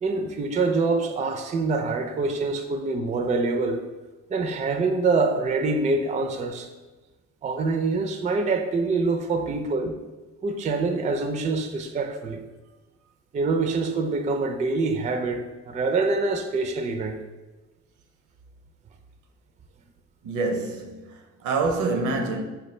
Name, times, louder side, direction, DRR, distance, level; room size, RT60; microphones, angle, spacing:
voice 1, 0.0-3.8 4.3-6.7 7.4-9.9 10.4-12.4 13.3-17.2, right 3 dB, 25° right, 0.4 m, -25 dB
voice 2, 20.2-22.4, right 3 dB, 75° right, 0.6 m, -27 dB
4.3 x 2.2 x 3.1 m
cardioid pair, 90°, 30 cm